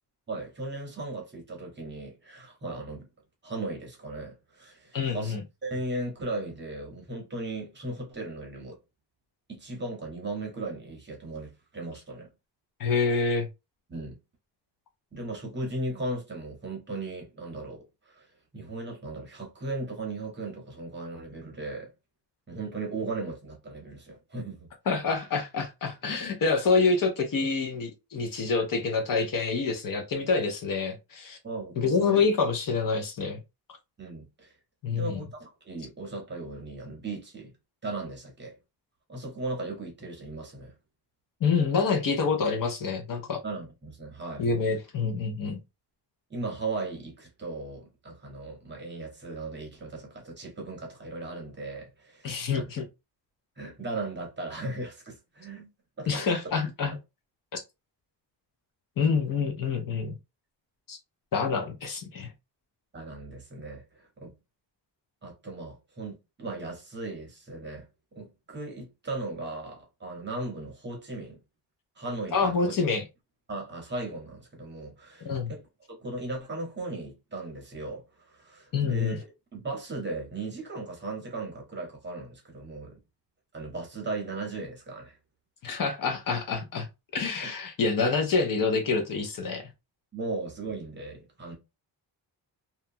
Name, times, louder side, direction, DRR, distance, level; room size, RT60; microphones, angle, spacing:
voice 1, 0.3-3.0 3.4-5.4 5.6-8.8 9.5-12.3 13.9-14.2 15.1-21.9 22.5-24.7 31.4-32.2 34.0-34.5 35.0-37.5 37.8-38.6 39.1-40.7 43.4-44.5 46.3-52.7 53.6-55.7 56.0-56.3 62.9-64.3 65.2-71.4 72.0-72.8 73.5-75.7 76.0-79.1 79.5-83.0 83.5-85.2 87.4-87.5 90.1-91.5, right 2 dB, 25° right, 0.8 m, -37 dB
voice 2, 4.9-5.4 12.8-13.5 24.9-31.4 31.8-33.4 34.8-35.2 41.4-43.4 44.4-45.6 52.2-52.8 56.1-56.9 57.5-57.6 59.0-60.1 60.9-61.0 61.3-62.3 72.3-73.0 75.2-75.5 78.7-79.2 85.6-86.9 87.1-89.7, left 4 dB, 50° left, 0.6 m, -27 dB
2.8 x 2.3 x 2.6 m
wide cardioid pair, 170°, 44 cm